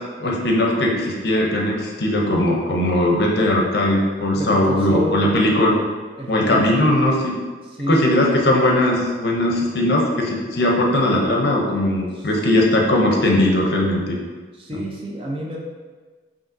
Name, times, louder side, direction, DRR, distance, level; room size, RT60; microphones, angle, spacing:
voice 1, 0.2-5.8 6.3-7.4 7.9-14.2, left 1 dB, 60° left, -1 dB, 0.6 m, -19 dB
voice 2, 4.3-5.4 6.1-6.8 7.7-8.1 12.1-12.3 14.5-15.6, right 1 dB, 30° right, -2 dB, 0.6 m, -29 dB
5.4 x 2.7 x 2.6 m, 1.4 s
head